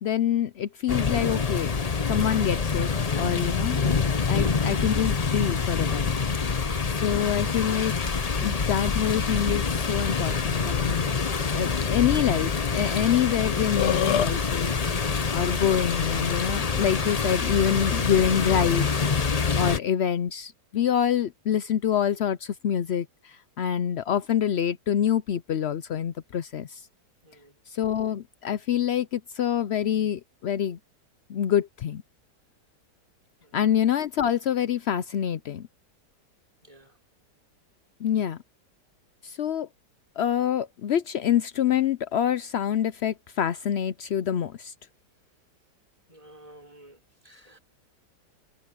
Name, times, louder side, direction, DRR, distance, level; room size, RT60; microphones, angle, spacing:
voice 1, 0.0-1.7 2.1-3.8 4.3-6.2 6.9-7.9 8.4-11.1 11.5-14.7 15.3-19.1 19.6-26.8 27.7-30.8 31.3-32.0 33.5-35.7 38.0-38.4 39.2-39.7 40.2-44.7, left 9 dB, 90° left, 0.5 m, -26 dB
sound 1, 0.9-19.8, left 5 dB, 35° left, 0.7 m, -26 dB
Burping eructation, 13.5-14.3, left 9 dB, 75° left, 1.5 m, -25 dB
voice 2, 46.1-47.0 47.2-47.6, right 1 dB, 20° right, 4.7 m, -51 dB
omnidirectional pair, 1.8 m